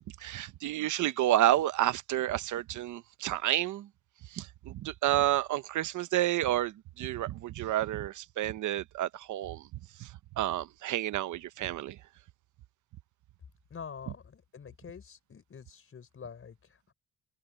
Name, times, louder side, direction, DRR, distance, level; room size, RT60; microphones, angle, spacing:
voice 1, 0.2-3.9 4.3-9.6 10.0-10.1 10.4-12.0, right 13 dB, 75° right, 1.0 m, -30 dB
voice 2, 13.7-16.9, left 6 dB, 45° left, 4.5 m, -46 dB
cardioid pair, 90°, 30 cm